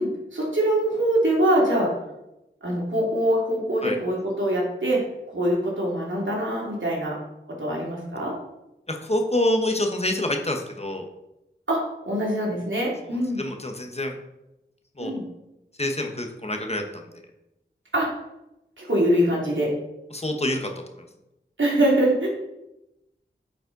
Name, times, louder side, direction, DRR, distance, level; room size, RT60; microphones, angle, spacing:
voice 1, 0.0-1.9 2.6-5.0 5.3-7.1 7.6-8.3 11.7-13.4 15.0-15.2 17.9-18.1 18.8-19.7 21.6-22.3, right 1 dB, 75° right, -4 dB, 2.6 m, -23 dB
voice 2, 8.9-11.1 13.0-14.2 15.0-15.1 15.8-17.2 20.1-20.7, left 1 dB, 30° left, 3 dB, 1.1 m, -27 dB
9.3 x 5.3 x 3.9 m, 0.92 s
wide cardioid pair, 50°, 20 cm